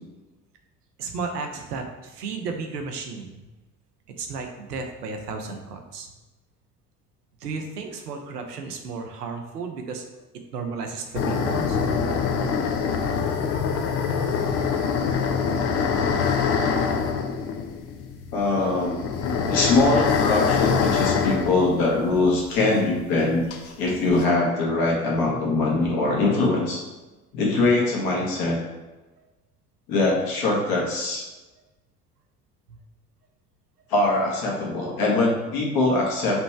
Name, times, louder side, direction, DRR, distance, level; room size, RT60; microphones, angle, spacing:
voice 1, 1.0-3.4 4.2-6.1 7.4-10.0 10.5-11.8 32.7-32.8, right 4 dB, 75° right, 4 dB, 0.7 m, -33 dB
sound 1, 11.1-22.6 22.8-22.9 23.5-24.2, left 6 dB, 30° left, 0.4 m, -24 dB
voice 2, 18.3-23.4 23.8-26.8 27.3-28.6 29.9-31.2 33.9-36.4, left 2 dB, 50° left, -3 dB, 1.5 m, -22 dB
3.3 x 3.0 x 4.5 m, 1.1 s
figure-of-eight pair, 65°, 47 cm